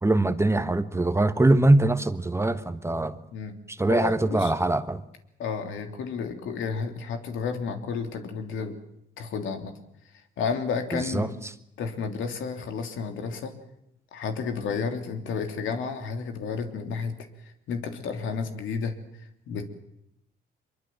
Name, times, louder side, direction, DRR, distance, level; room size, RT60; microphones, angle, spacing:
voice 1, 0.0-3.2 3.7-5.0 10.9-11.3, right 2 dB, 15° right, 11 dB, 1.3 m, -22 dB
voice 2, 3.9-4.5 5.4-8.7 9.2-9.7 10.4-11.3 11.8-13.5 14.1-19.7, left 5 dB, 80° left, 6 dB, 3.3 m, -32 dB
24.5 x 23.0 x 7.6 m, 0.79 s
cardioid pair, 90°, 20 cm